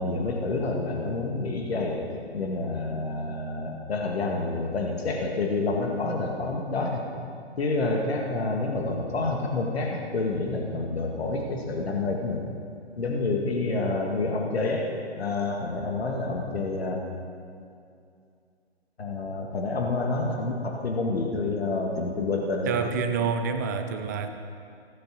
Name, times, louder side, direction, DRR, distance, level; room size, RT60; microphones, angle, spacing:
voice 1, 0.0-2.0 2.3-7.0 7.6-12.4 13.0-17.0 19.0-22.8, left 3 dB, 65° left, 0 dB, 2.1 m, -28 dB
voice 2, 22.7-24.3, right 6 dB, 15° right, 7 dB, 0.5 m, -27 dB
16.5 x 7.9 x 7.6 m, 2.4 s
figure-of-eight pair, 135°, 33 cm